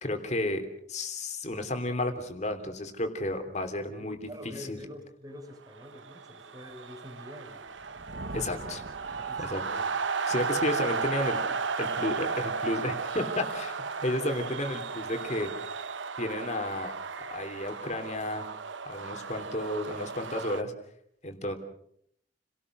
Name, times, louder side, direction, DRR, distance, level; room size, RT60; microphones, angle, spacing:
voice 1, 0.0-4.2 4.4-4.8 8.3-8.8 9.4-9.6 10.3-11.4 11.8-15.5 16.2-16.9 17.3-18.5 18.8-20.7 21.2-21.6, left 1 dB, 40° left, 6 dB, 3.1 m, -32 dB
voice 2, 4.0-7.6 9.2-10.0 10.4-10.7 11.8-12.1, left 1 dB, 20° right, 5 dB, 4.3 m, -46 dB
sound 1, 5.8-20.6, right 5 dB, 85° right, 1.0 m, -34 dB
Thunder, 7.6-10.1, right 2 dB, 55° right, 1.0 m, -44 dB
30.0 x 18.5 x 6.3 m, 0.70 s
head